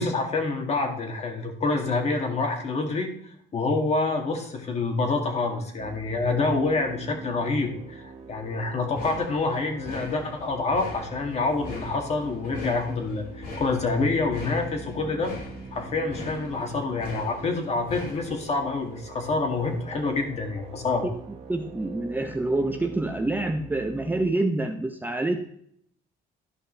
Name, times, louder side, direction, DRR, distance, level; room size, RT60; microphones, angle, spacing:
voice 1, 0.0-15.4 15.7-21.1, left 3 dB, 40° left, 3 dB, 2.0 m, -27 dB
sound 1, 5.8-24.3, right 4 dB, 40° right, 1.4 m, -44 dB
sound 2, 8.9-20.3, left 2 dB, 65° left, 3.2 m, -42 dB
voice 2, 21.5-25.4, right 2 dB, 10° right, 4 dB, 0.7 m, -27 dB
12.5 x 5.4 x 3.3 m, 0.67 s
cardioid pair, 110°, 17 cm